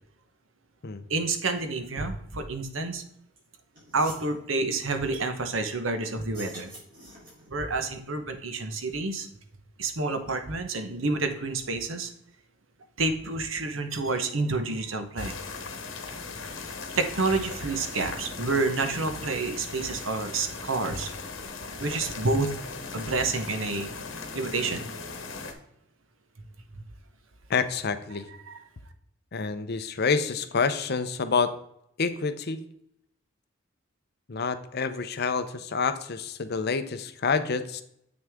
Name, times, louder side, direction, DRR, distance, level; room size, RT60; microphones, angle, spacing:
voice 1, 1.1-3.0 3.9-6.7 7.5-9.3 9.8-12.1 13.0-15.4 17.0-21.1 21.8-22.5 22.9-23.9 24.3-24.9 28.5-28.6, right 3 dB, 90° right, 7 dB, 1.1 m, -29 dB
sound 1, 3.4-3.5 3.7-4.3 6.2-7.6, right 1 dB, 45° right, 3.5 m, -46 dB
sound 2, 15.2-25.5, left 4 dB, 80° left, 1.3 m, -38 dB
voice 2, 27.5-28.3 29.3-31.5 32.0-32.6 34.3-37.8, left 5 dB, 55° left, 11 dB, 0.7 m, -28 dB
8.1 x 6.2 x 3.6 m, 0.74 s
head